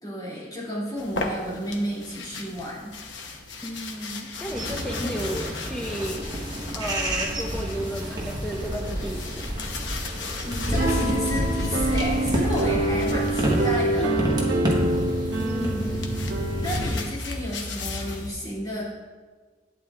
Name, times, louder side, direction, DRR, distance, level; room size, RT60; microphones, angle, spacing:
voice 1, 0.0-2.9 5.0-5.1 10.4-14.2 15.4-15.9 16.6-18.8, equal, 20° left, -7 dB, 2.5 m, -31 dB
sound 1, 1.0-13.7 14.7-18.3, left 3 dB, 80° left, 0.9 m, -37 dB
voice 2, 3.6-6.4 6.8-9.4 14.0-14.2 15.4-16.1, equal, 5° left, 0 dB, 0.5 m, -33 dB
sound 2, 4.5-16.9, right 1 dB, 20° right, 1.2 m, -29 dB
sound 3, 10.7-16.9, right 2 dB, 70° right, 1.0 m, -26 dB
11.5 x 8.8 x 2.4 m, 1.4 s
head